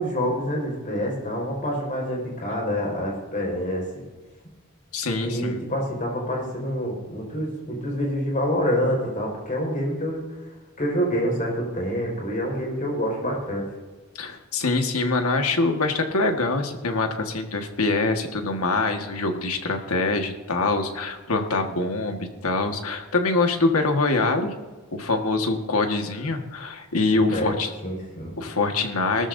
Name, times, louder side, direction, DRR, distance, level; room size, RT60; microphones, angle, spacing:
voice 1, 0.0-3.8 5.2-10.2 10.8-13.6 27.1-27.5 27.8-28.3, equal, 35° left, -2 dB, 5.0 m, -27 dB
voice 2, 4.9-5.6 14.2-24.5 24.9-27.7 28.4-29.3, left 3 dB, 90° left, 4 dB, 1.6 m, -24 dB
18.5 x 13.5 x 2.7 m, 1.3 s
head